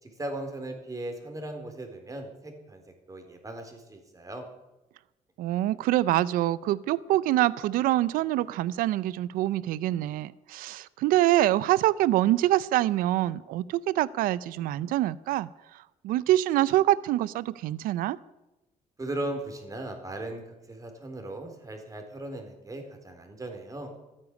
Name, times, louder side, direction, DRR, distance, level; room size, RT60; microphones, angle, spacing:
voice 1, 0.0-2.8 3.1-4.5 19.0-23.9, right 1 dB, 25° right, 5 dB, 4.1 m, -38 dB
voice 2, 5.4-18.2, right 14 dB, 90° right, 19 dB, 0.5 m, -25 dB
14.0 x 9.8 x 9.3 m, 0.99 s
cardioid pair, 85°, 14 cm